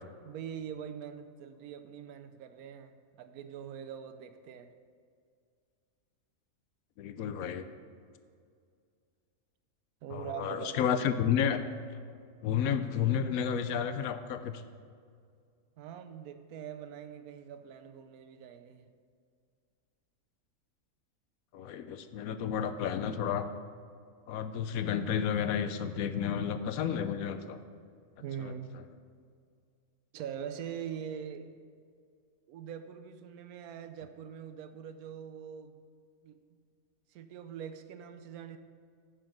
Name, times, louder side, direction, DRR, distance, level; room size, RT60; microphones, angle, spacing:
voice 1, 0.2-4.7 10.0-10.8 15.8-18.8 28.2-28.7 30.1-31.6 32.5-35.8 36.2-36.6 37.1-38.6, right 8 dB, 85° right, 9 dB, 1.1 m, -43 dB
voice 2, 7.0-7.7 10.1-11.6 12.4-14.6 21.5-23.5 24.3-27.6 28.4-28.5, left 8 dB, 75° left, 10 dB, 1.0 m, -31 dB
9.6 x 5.1 x 6.0 m, 2.2 s
omnidirectional pair, 1.5 m